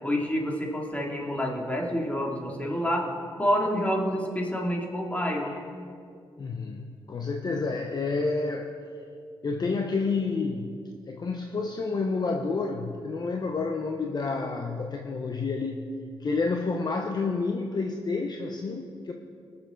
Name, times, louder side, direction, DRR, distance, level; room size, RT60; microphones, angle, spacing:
voice 1, 0.0-3.1 3.4-5.5, equal, 15° left, -1 dB, 2.6 m, -28 dB
voice 2, 6.4-8.7 9.4-10.8 11.1-15.9 16.2-19.1, left 4 dB, 40° left, 3 dB, 0.8 m, -29 dB
21.0 x 7.1 x 3.9 m, 2.4 s
cardioid pair, 65°, 10 cm